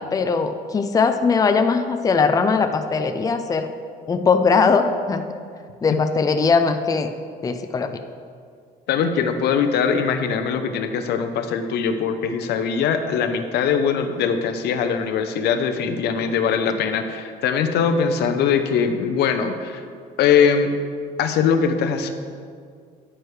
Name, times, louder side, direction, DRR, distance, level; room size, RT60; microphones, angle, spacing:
voice 1, 0.0-3.7 4.1-5.3 5.8-7.1 7.4-8.0, left 5 dB, 20° left, 7 dB, 0.5 m, -20 dB
voice 2, 8.9-19.8 20.2-20.7 21.2-22.1, left 6 dB, 75° left, 8 dB, 0.7 m, -21 dB
10.0 x 8.9 x 3.3 m, 2.1 s
cardioid pair, 110°, 17 cm